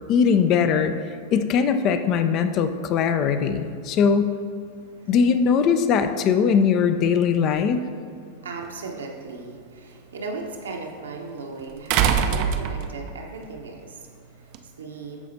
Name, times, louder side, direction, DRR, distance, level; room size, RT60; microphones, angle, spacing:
voice 1, 0.1-0.9 1.3-4.3 5.1-7.8, left 6 dB, 35° left, 9 dB, 0.4 m, -20 dB
voice 2, 4.7-5.1 8.3-15.3, right 3 dB, 70° right, 1 dB, 1.0 m, -37 dB
sound 1, 8.6-8.7 11.9-13.2 14.5-14.6, right 8 dB, 45° right, 0.4 m, -22 dB
13.5 x 4.9 x 2.7 m, 2.3 s
figure-of-eight pair, 90°, 0 cm